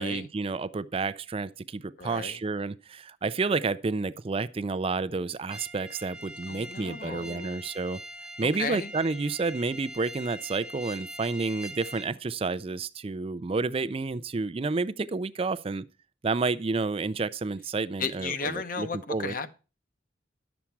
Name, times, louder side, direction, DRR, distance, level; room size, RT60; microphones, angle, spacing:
voice 1, 0.0-8.0 8.4-15.8 16.2-19.3, right 3 dB, 30° right, 0.4 m, -30 dB
voice 2, 2.0-2.4 6.5-7.7 8.4-8.9 18.0-19.5, left 4 dB, 50° left, 0.9 m, -35 dB
sound 1, 5.5-12.1, right 1 dB, 5° right, 0.9 m, -43 dB
11.5 x 7.2 x 4.5 m
head